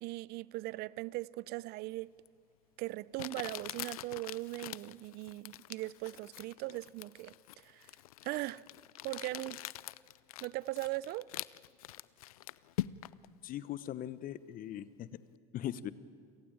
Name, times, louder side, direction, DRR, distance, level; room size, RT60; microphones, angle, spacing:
voice 1, 0.0-2.1 2.8-7.9 8.2-8.6 9.0-9.6 10.4-11.3, right 19 dB, 65° right, 0.6 m, -39 dB
Crumpling crinkling, 2.3-2.4 3.2-13.3, left 15 dB, 90° left, 0.5 m, -44 dB
voice 2, 13.4-15.1 15.5-15.9, left 12 dB, 50° left, 1.1 m, -40 dB
28.0 x 17.0 x 8.9 m
hypercardioid pair, 80°, 18 cm